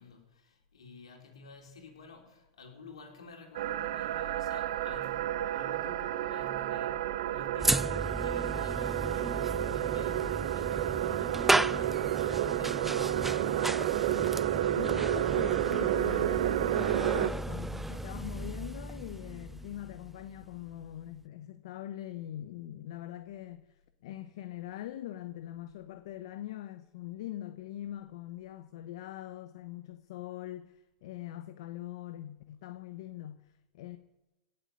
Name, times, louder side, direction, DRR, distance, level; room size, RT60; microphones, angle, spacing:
voice 1, 0.0-14.4, left 3 dB, 90° left, 4.2 m, -50 dB
sound 1, 3.6-17.3, right 13 dB, 75° right, 0.8 m, -31 dB
sound 2, 7.6-20.8, right 2 dB, 5° right, 0.4 m, -35 dB
voice 2, 14.7-34.0, left 13 dB, 70° left, 0.9 m, -42 dB
17.0 x 7.8 x 9.4 m
hypercardioid pair, 100°, 3 cm